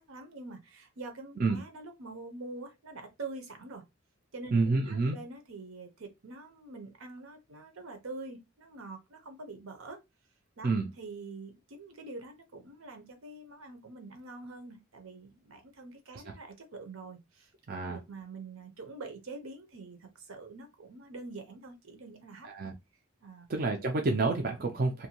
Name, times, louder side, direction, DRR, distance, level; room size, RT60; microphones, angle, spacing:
voice 1, 0.1-3.8 4.3-10.0 10.6-17.5 17.8-22.7 23.2-23.5, right 3 dB, 75° right, 0.7 m, -45 dB
voice 2, 4.5-5.2 10.6-10.9 17.7-18.0 22.4-22.7 23.5-25.1, right 3 dB, 40° right, 0.4 m, -28 dB
2.6 x 2.2 x 2.8 m
head